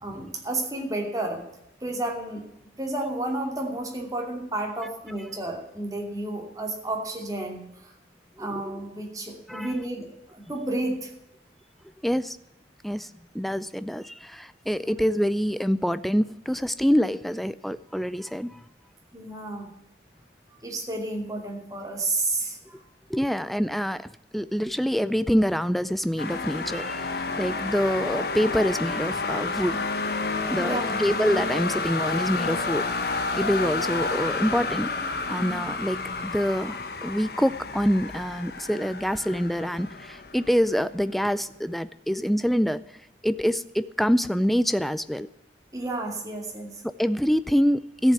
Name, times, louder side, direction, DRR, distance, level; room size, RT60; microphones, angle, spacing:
voice 1, 0.0-1.4 1.8-2.4 2.8-7.9 8.4-10.1 10.3-11.1 14.8-15.0 19.1-19.7 20.6-22.8 30.6-31.1 45.7-46.8, right 2 dB, 20° right, 1 dB, 2.7 m, -31 dB
voice 2, 8.4-8.7 9.5-9.7 12.0-12.4 12.8-13.1 13.3-18.6 23.1-24.1 24.3-29.8 30.5-32.9 33.3-34.9 35.3-42.8 43.2-45.3 46.8-48.1, equal, ahead, 14 dB, 0.4 m, -26 dB
sound 1, 26.2-41.0, left 3 dB, 55° left, 1.2 m, -30 dB
14.0 x 7.4 x 9.4 m, 0.86 s
head